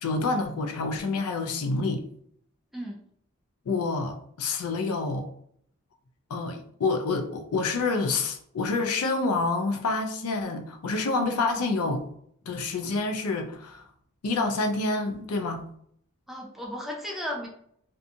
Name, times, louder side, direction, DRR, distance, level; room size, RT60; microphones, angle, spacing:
voice 1, 0.0-2.0 3.7-5.3 6.3-12.0 12.5-13.8 14.2-15.6, left 3 dB, 85° left, 0.4 m, -28 dB
voice 2, 16.3-17.5, equal, ahead, 0.3 m, -34 dB
2.6 x 2.3 x 2.6 m
head